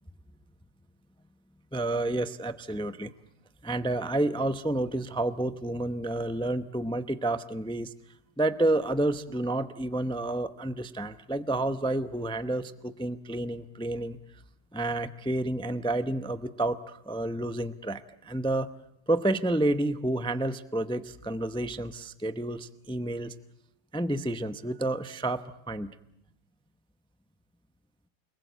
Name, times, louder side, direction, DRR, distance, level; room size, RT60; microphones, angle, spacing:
voice 1, 1.7-3.1 3.6-7.9 8.4-14.2 14.7-18.7 19.1-23.3 23.9-25.9, right 1 dB, 5° left, 11 dB, 0.5 m, -30 dB
29.0 x 20.0 x 8.0 m, 0.81 s
omnidirectional pair, 1.8 m